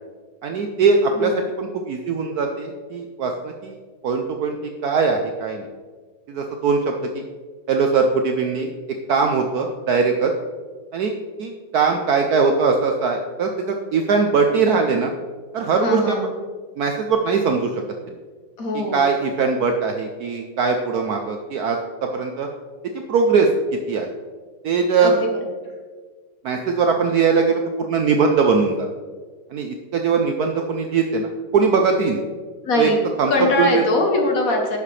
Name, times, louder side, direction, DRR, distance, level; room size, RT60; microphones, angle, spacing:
voice 1, 0.4-1.3 1.6-3.7 4.0-4.6 4.8-5.7 6.3-7.2 7.7-8.7 9.1-10.3 10.9-11.1 11.4-15.1 15.5-16.2 16.8-17.8 18.9-22.5 23.1-23.5 23.9-24.1 24.6-25.1 26.4-28.9 29.5-32.2 32.8-32.9 33.2-33.3 33.6-33.8, right 5 dB, 70° right, 3 dB, 0.9 m, -20 dB
voice 2, 15.7-16.3 18.6-19.0 25.0-25.3 32.6-33.0 33.3-34.8, left 2 dB, 50° left, 2 dB, 1.3 m, -21 dB
11.0 x 6.7 x 3.3 m, 1.5 s
omnidirectional pair, 2.1 m